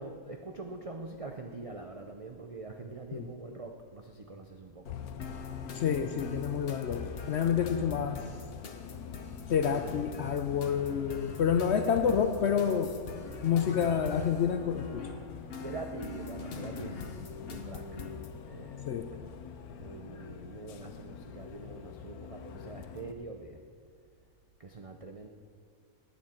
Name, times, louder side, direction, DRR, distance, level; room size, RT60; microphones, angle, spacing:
voice 1, 0.0-5.1 9.2-9.5 15.5-18.1 18.4-19.2 19.8-23.6 24.6-25.3, right 3 dB, 55° right, 4 dB, 0.3 m, -44 dB
Bus, 4.9-23.1, left 7 dB, 85° left, 1.2 m, -44 dB
sound 1, 5.2-18.3, left 4 dB, 45° left, 1.0 m, -44 dB
voice 2, 5.7-8.3 9.5-13.0 13.4-15.1 18.9-19.1, left 7 dB, 65° left, 9 dB, 0.7 m, -28 dB
18.0 x 8.8 x 4.3 m, 2.1 s
omnidirectional pair, 1.5 m